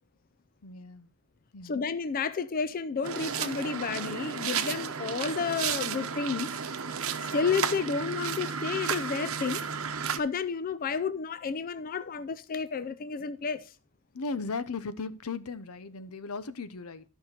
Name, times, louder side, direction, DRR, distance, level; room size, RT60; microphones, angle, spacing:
voice 1, 0.6-1.1 1.5-1.8 14.1-17.0, left 4 dB, 90° left, 0.8 m, -37 dB
voice 2, 1.6-6.6 7.3-9.6 10.2-13.7, left 5 dB, 40° left, 0.4 m, -31 dB
sound 1, 3.0-10.2, right 7 dB, 70° right, 0.9 m, -33 dB
12.5 x 5.8 x 4.3 m
head